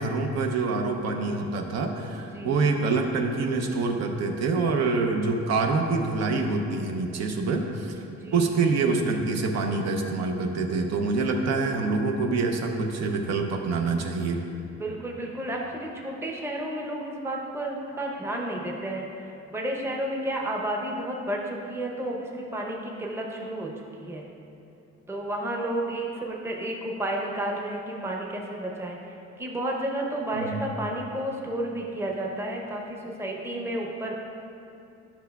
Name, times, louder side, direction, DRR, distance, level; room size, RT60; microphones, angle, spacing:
voice 1, 0.0-8.0 8.3-14.4 30.3-30.6, right 3 dB, 65° right, 3 dB, 0.6 m, -26 dB
voice 2, 8.0-8.4 14.8-19.0 19.5-23.7 24.0-24.2 25.1-29.0 29.4-34.1, right 1 dB, 10° right, -1 dB, 0.7 m, -31 dB
10.0 x 5.8 x 2.3 m, 2.7 s
cardioid pair, 125°, 29 cm